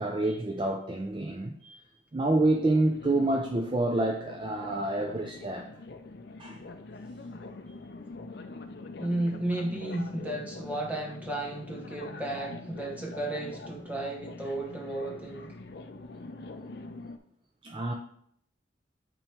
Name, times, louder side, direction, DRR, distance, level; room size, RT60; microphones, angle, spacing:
voice 1, 0.0-1.8 2.1-5.7 6.4-6.6 17.6-17.9, right 2 dB, 25° right, 1 dB, 0.4 m, -28 dB
sound 1, 2.4-17.2, left 3 dB, 55° left, 0.5 m, -44 dB
voice 2, 9.0-15.6, right 1 dB, 10° right, -1 dB, 1.0 m, -33 dB
8.7 x 3.0 x 4.5 m, 0.67 s
head